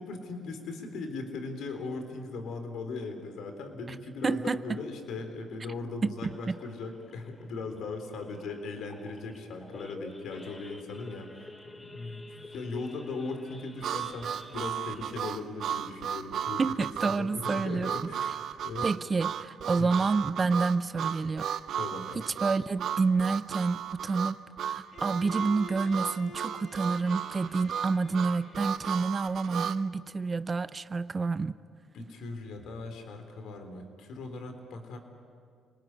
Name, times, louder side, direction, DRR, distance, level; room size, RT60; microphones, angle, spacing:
voice 1, 0.0-16.6 17.1-18.9 19.8-19.9 21.8-22.2 31.9-35.0, left 3 dB, 80° left, 6 dB, 3.9 m, -39 dB
voice 2, 4.2-4.6 6.0-6.3 16.6-17.9 18.8-21.5 22.3-31.5, right 4 dB, 30° right, 14 dB, 0.7 m, -29 dB
Idling / Accelerating revving vroom / Sawing, 6.2-17.3 17.7-17.9 18.1-18.2 18.7-19.0 19.5-19.6 19.8-20.1, left 2 dB, 20° left, 2.8 m, -50 dB
Harmonica, 13.8-29.8, right 9 dB, 70° right, 0.7 m, -34 dB
Bowed string instrument, 24.9-29.8, left 2 dB, 50° left, 1.7 m, -49 dB
29.0 x 20.0 x 9.8 m, 2.2 s
cardioid pair, 90°, 0 cm